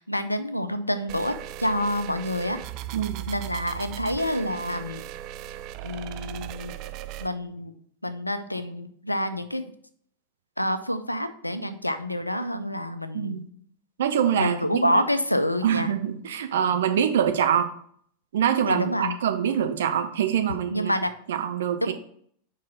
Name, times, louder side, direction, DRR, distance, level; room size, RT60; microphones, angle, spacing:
voice 1, 0.0-2.6 3.3-5.1 5.8-6.7 7.2-7.7 8.0-9.7 10.6-13.4 14.4-15.9 18.7-19.2 20.7-21.1 21.8-21.9, left 1 dB, 85° left, 11 dB, 0.5 m, -27 dB
sound 1, 1.1-7.3, right 13 dB, 40° right, 0.3 m, -37 dB
voice 2, 2.9-3.2 13.1-13.5 14.0-14.9 15.6-17.7 18.3-20.9 21.3-21.9, right 9 dB, 60° right, 7 dB, 0.7 m, -24 dB
4.9 x 4.7 x 5.6 m, 0.62 s
figure-of-eight pair, 90°, 0 cm